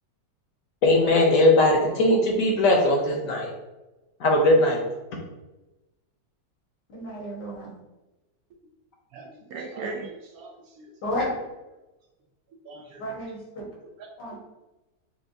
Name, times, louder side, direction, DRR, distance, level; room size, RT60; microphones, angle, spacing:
voice 1, 0.8-3.5 4.2-4.8, left 1 dB, 60° left, 0 dB, 1.0 m, -19 dB
voice 2, 6.9-7.8 11.0-11.4 13.0-13.7 14.2-14.4, left 1 dB, 90° left, -4 dB, 2.0 m, -32 dB
voice 3, 9.1-10.9 12.7-13.0 14.0-14.4, right 3 dB, 70° right, 1 dB, 0.9 m, -39 dB
6.7 x 2.2 x 2.6 m, 1.1 s
omnidirectional pair, 1.8 m